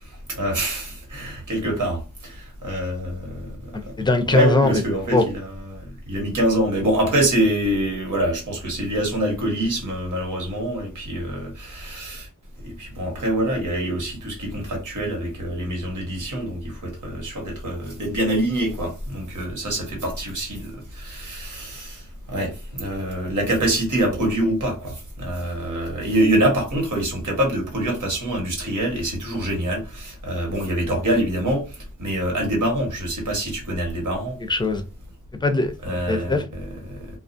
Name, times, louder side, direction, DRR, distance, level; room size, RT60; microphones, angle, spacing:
voice 1, 0.3-3.5 4.3-12.3 12.6-22.0 22.3-34.4 35.8-37.1, right 1 dB, 70° right, 1.3 m, -25 dB
voice 2, 3.7-4.8 5.1-5.2 34.5-34.8 35.4-36.4, left 2 dB, 15° left, 0.5 m, -21 dB
2.3 x 2.3 x 2.5 m
wide cardioid pair, 90°, 32 cm